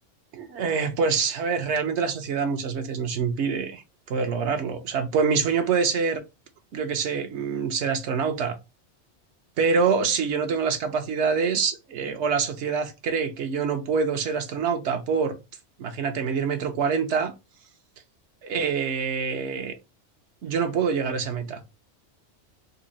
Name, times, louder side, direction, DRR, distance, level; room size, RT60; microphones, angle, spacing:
voice 1, 0.3-6.2 6.7-8.6 9.6-15.4 15.8-17.3 18.4-19.7 20.4-21.6, right 5 dB, 70° right, 0.9 m, -25 dB
4.0 x 2.0 x 3.8 m
omnidirectional pair, 1.2 m